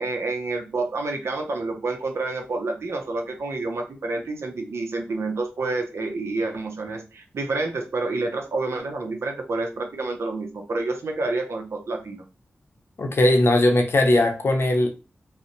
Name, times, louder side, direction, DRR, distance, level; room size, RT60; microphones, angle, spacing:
voice 1, 0.0-12.2, right 3 dB, 75° right, 0.5 m, -28 dB
voice 2, 13.0-14.9, left 1 dB, 60° left, 0.6 m, -19 dB
2.6 x 2.0 x 2.5 m
cardioid pair, 40°, 5 cm